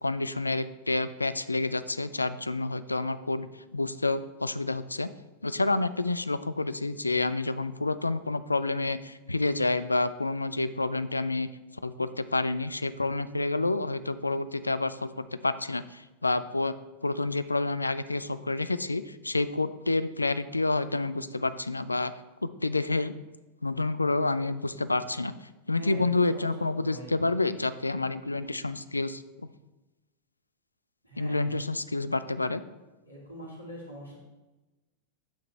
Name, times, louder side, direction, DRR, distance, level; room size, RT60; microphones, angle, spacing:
voice 1, 0.0-3.5 3.7-5.1 5.4-11.5 11.8-16.7 17.0-22.1 22.4-23.1 23.6-25.3 25.7-29.2 31.2-32.6, left 2 dB, 80° left, 14 dB, 0.4 m, -29 dB
voice 2, 25.7-27.2 31.0-31.6 33.0-34.2, equal, 90° right, -4 dB, 2.5 m, -43 dB
9.0 x 7.0 x 3.2 m, 1.1 s
figure-of-eight pair, 90°, 0 cm